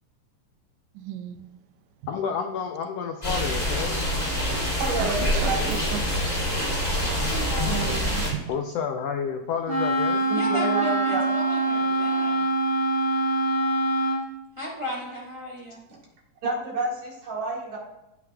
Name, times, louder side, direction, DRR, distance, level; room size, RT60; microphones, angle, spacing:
voice 1, 0.9-1.5 5.0-5.5 5.9-6.0 7.7-8.5, right 11 dB, 80° right, 9 dB, 1.7 m, -33 dB
voice 2, 2.1-4.0 5.3-5.4 8.5-10.2, left 6 dB, 85° left, 5 dB, 1.4 m, -30 dB
sound 1, 3.2-8.3, equal, 15° left, 2.8 m, -26 dB
voice 3, 4.8-5.7 10.3-11.4 16.4-17.8, right 2 dB, 65° right, -3 dB, 3.3 m, -29 dB
voice 4, 7.3-8.0 10.3-12.4 14.6-15.8, equal, 40° right, -3 dB, 0.4 m, -35 dB
Wind instrument woodwind instrument, 9.7-14.2, right 2 dB, 20° right, 3.2 m, -24 dB
16.5 x 6.0 x 2.3 m, 0.96 s
omnidirectional pair, 3.6 m